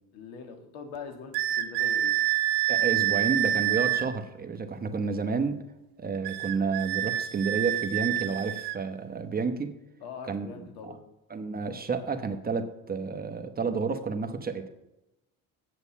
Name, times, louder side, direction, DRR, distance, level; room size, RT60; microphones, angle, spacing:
voice 1, 0.1-2.1 10.0-11.0, left 6 dB, 85° left, 5 dB, 2.1 m, -42 dB
sound 1, 1.3-4.1 6.2-8.8, right 13 dB, 75° right, 0.9 m, -27 dB
voice 2, 2.7-5.6 6.0-9.7 10.3-10.5 10.8-11.0 11.3-14.7, right 5 dB, 25° right, 7 dB, 1.0 m, -30 dB
8.3 x 7.9 x 7.2 m, 0.94 s
cardioid pair, 110°, 38 cm